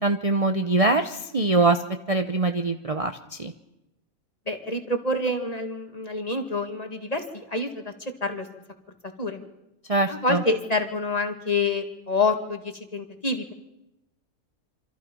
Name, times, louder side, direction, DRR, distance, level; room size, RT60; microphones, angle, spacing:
voice 1, 0.0-1.8 2.1-3.1 3.4-3.5 9.9-10.4, right 3 dB, 30° right, 7 dB, 0.8 m, -23 dB
voice 2, 4.5-7.9 8.2-8.5 9.2-9.4 10.1-13.5, left 2 dB, 30° left, 5 dB, 2.2 m, -27 dB
27.0 x 26.0 x 5.4 m, 0.91 s
omnidirectional pair, 1.4 m